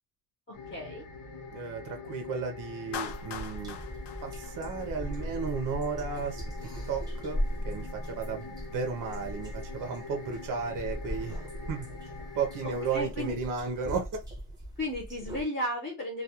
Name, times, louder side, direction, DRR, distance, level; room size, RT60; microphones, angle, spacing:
sound 1, 0.5-13.1, left 4 dB, 70° left, 1.0 m, -44 dB
voice 1, 0.5-1.0 12.6-13.4 14.8-16.2, equal, 25° left, 0.8 m, -34 dB
voice 2, 1.5-3.8 4.2-11.4 11.7-11.9 12.3-14.1, right 5 dB, 50° right, 0.6 m, -34 dB
Clapping, 2.9-5.2, left 8 dB, 85° left, 0.5 m, -41 dB
sound 2, 3.0-15.4, equal, 10° right, 0.9 m, -39 dB
2.3 x 2.3 x 2.8 m
cardioid pair, 155°, 40 cm